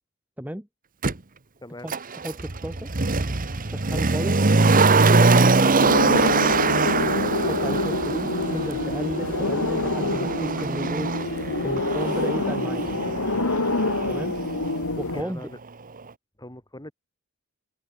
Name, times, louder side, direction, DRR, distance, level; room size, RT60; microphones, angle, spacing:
voice 1, 0.4-0.7 1.8-1.9 2.2-2.9 3.7-4.4 5.2-6.0 7.5-11.1 11.6-12.8 14.1-14.4 15.0-15.5, equal, 5° right, 1.8 m, -33 dB
Motor vehicle (road), 1.0-1.1 1.9-14.8 15.1-15.2, right 3 dB, 40° right, 1.2 m, -23 dB
voice 2, 1.6-1.9 4.2-4.6 7.0-7.4 15.1-15.6 16.4-16.9, left 1 dB, 20° left, 6.7 m, -41 dB
sound 1, 5.8-15.2, left 2 dB, 75° left, 2.2 m, -27 dB
head